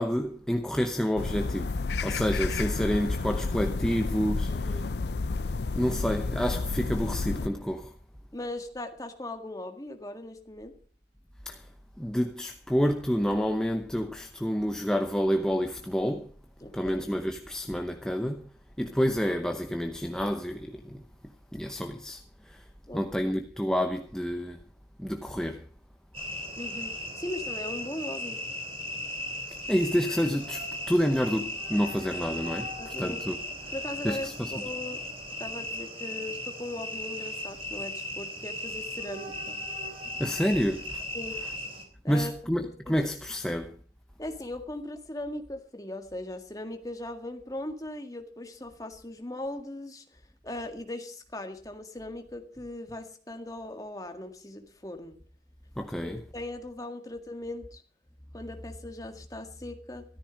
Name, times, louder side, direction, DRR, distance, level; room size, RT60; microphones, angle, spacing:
voice 1, 0.0-4.7 5.7-7.9 11.4-11.7 12.0-16.3 16.7-18.4 18.8-21.0 21.5-22.6 22.9-24.6 25.0-25.6 29.5-33.4 34.0-34.5 40.2-41.0 42.1-43.7 55.8-56.2, equal, 5° left, 0.8 m, -29 dB
sound 1, 1.1-7.5, left 3 dB, 70° left, 0.5 m, -31 dB
voice 2, 4.5-4.9 8.3-10.7 16.6-17.0 22.9-23.3 26.6-28.4 32.8-33.3 33.7-35.0 35.4-39.6 41.1-41.4 42.0-43.0 44.2-55.2 56.0-57.8 58.3-60.0, left 1 dB, 20° left, 1.8 m, -39 dB
sound 2, 26.1-41.8, left 1 dB, 30° right, 3.6 m, -37 dB
13.5 x 13.5 x 5.1 m
head